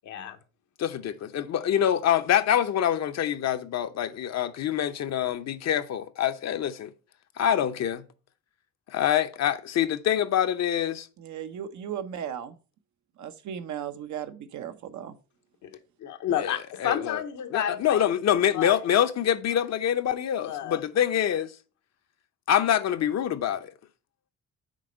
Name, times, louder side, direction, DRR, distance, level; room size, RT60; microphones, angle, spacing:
voice 1, 0.0-0.4 15.6-15.7 16.0-18.1 18.5-18.8 20.4-20.8, left 10 dB, 75° left, 1.0 m, -30 dB
voice 2, 0.8-6.9 7.4-8.0 8.9-11.1 16.4-17.2 17.5-21.5 22.5-23.7, left 10 dB, 60° left, 0.8 m, -25 dB
voice 3, 11.2-12.5 13.2-15.1, right 9 dB, 70° right, 0.8 m, -36 dB
6.3 x 4.2 x 5.1 m
cardioid pair, 90°, 30 cm